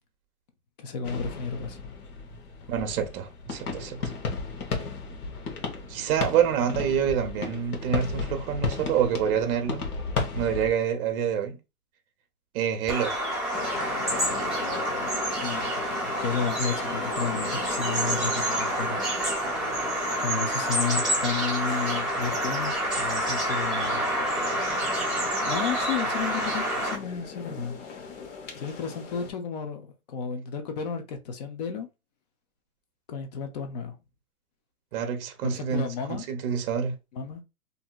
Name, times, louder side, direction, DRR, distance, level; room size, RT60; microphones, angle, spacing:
voice 1, 0.8-1.8 15.4-15.7 16.2-19.0 20.2-24.0 25.4-27.8 28.6-31.9 33.1-34.0 35.5-36.2 37.1-37.4, left 6 dB, 30° left, 0.4 m, -32 dB
sound 1, 1.0-10.7, left 4 dB, 80° left, 1.0 m, -34 dB
voice 2, 2.7-4.0 5.9-9.9 10.3-11.6 12.5-13.1 34.9-35.9 36.3-36.9, right 8 dB, 40° right, 0.7 m, -27 dB
Bird vocalization bird call bird song, 12.9-26.9, right 1 dB, ahead, 0.8 m, -28 dB
sound 2, 13.5-29.3, left 5 dB, 55° left, 1.0 m, -39 dB
2.7 x 2.6 x 2.3 m
hypercardioid pair, 135°, 44 cm